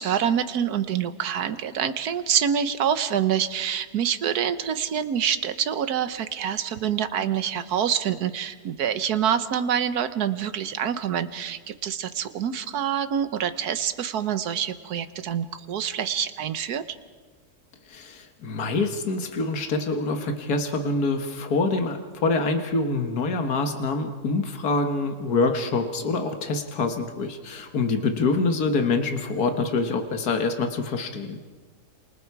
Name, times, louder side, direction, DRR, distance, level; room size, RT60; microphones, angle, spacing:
voice 1, 0.0-16.8, right 8 dB, 80° right, 11 dB, 1.5 m, -26 dB
voice 2, 17.9-31.4, left 3 dB, 80° left, 5 dB, 1.9 m, -25 dB
28.0 x 28.0 x 4.8 m, 1.4 s
omnidirectional pair, 1.6 m